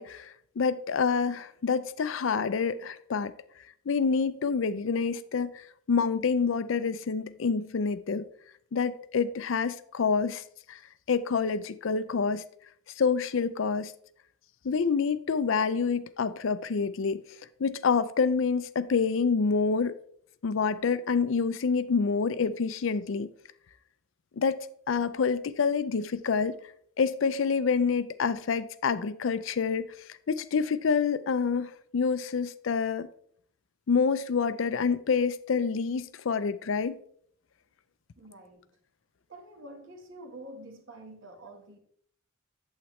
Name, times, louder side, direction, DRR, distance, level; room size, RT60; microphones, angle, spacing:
voice 1, 0.0-3.3 3.9-8.2 8.7-10.4 10.7-10.8 11.1-12.4 13.0-13.9 14.6-17.2 17.6-19.9 20.4-23.3 24.4-26.6 27.0-29.8 30.3-33.1 33.9-37.0, left 5 dB, 65° left, 0.4 m, -27 dB
voice 2, 38.2-38.6 39.3-41.8, right 1 dB, 65° right, 1.5 m, -47 dB
8.7 x 7.4 x 3.1 m
head